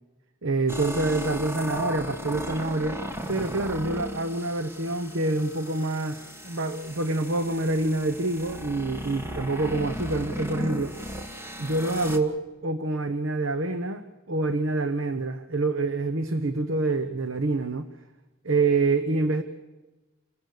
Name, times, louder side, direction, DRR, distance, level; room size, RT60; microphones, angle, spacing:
voice 1, 0.4-3.0 3.3-10.9 11.6-17.9 18.4-19.4, right 2 dB, 75° right, 8 dB, 1.0 m, -26 dB
sound 1, 0.7-12.2, equal, 10° right, 1.5 m, -36 dB
28.0 x 20.0 x 6.6 m, 1.1 s
head